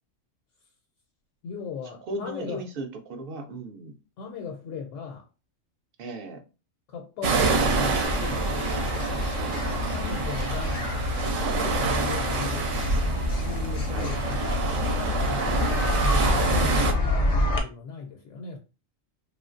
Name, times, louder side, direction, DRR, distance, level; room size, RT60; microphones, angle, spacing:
voice 1, 1.4-2.6 4.2-5.3 6.9-8.5 9.9-11.0 11.6-12.8 13.4-18.6, left 6 dB, 75° left, 0.9 m, -38 dB
voice 2, 2.1-3.9 6.0-6.4 9.3-9.6 13.9-14.2, right 2 dB, 55° right, 0.7 m, -36 dB
sound 1, 7.2-16.9, right 3 dB, 75° right, 1.0 m, -27 dB
sound 2, 8.0-17.6, left 1 dB, 45° left, 0.5 m, -28 dB
3.0 x 2.4 x 2.5 m
omnidirectional pair, 1.3 m